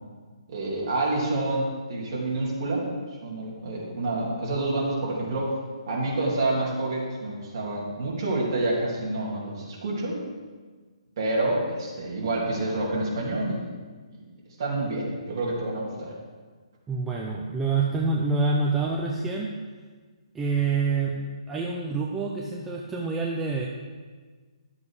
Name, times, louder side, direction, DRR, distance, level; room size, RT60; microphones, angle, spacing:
voice 1, 0.5-2.9 3.2-5.5 5.9-10.2 11.2-13.6 14.6-16.1, right 2 dB, 35° right, -4 dB, 3.0 m, -28 dB
voice 2, 16.9-19.5 20.3-23.7, right 4 dB, 5° right, -2 dB, 0.5 m, -27 dB
11.5 x 7.2 x 4.9 m, 1.5 s
hypercardioid pair, 175°, 3 cm